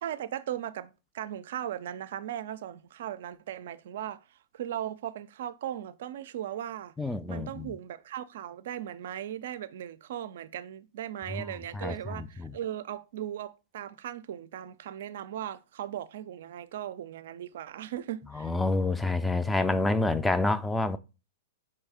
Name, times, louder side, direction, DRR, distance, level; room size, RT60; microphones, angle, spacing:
voice 1, 0.0-6.9 7.3-18.5, right 11 dB, 60° right, 0.4 m, -38 dB
voice 2, 7.0-7.7 11.3-11.5 11.7-12.5 18.3-21.0, left 2 dB, 5° left, 0.4 m, -28 dB
4.6 x 3.2 x 3.5 m
figure-of-eight pair, 105°, 0 cm